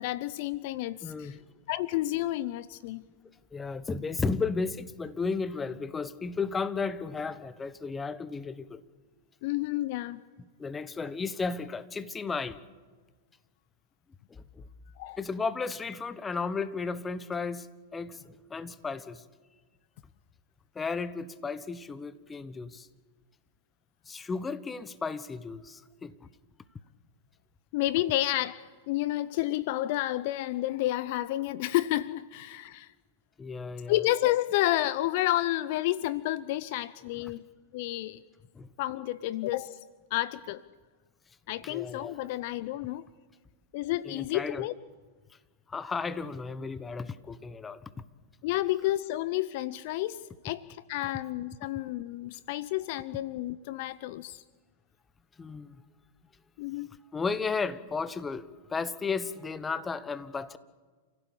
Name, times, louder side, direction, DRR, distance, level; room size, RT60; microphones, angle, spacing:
voice 1, 0.0-1.4 1.7-3.0 9.4-10.2 15.0-15.2 27.7-32.9 33.9-37.4 37.7-38.2 38.8-39.8 40.1-40.6 41.5-43.1 43.7-44.7 48.4-54.4 56.6-56.9, left 15 dB, 55° left, 18 dB, 0.6 m, -30 dB
voice 2, 1.0-1.4 3.5-8.8 10.6-12.6 14.3-14.6 15.2-19.2 20.7-22.9 24.1-26.3 33.4-34.0 38.5-38.7 41.6-42.2 44.0-44.7 45.7-47.8 55.4-55.8 57.1-60.6, left 4 dB, 15° left, 14 dB, 1.2 m, -34 dB
29.0 x 16.0 x 8.6 m, 1.5 s
hypercardioid pair, 100°, 0 cm